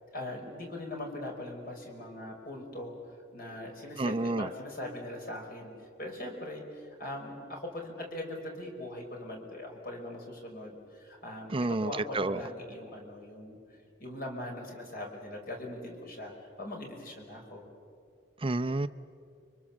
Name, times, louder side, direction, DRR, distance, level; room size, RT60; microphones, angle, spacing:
voice 1, 0.1-3.0 3.3-5.7 6.0-13.6 14.0-17.7, left 1 dB, 50° left, 1 dB, 5.2 m, -41 dB
voice 2, 4.0-4.5 11.5-12.4 18.4-18.9, right 2 dB, 30° right, 12 dB, 0.7 m, -29 dB
30.0 x 24.0 x 7.3 m, 2.4 s
head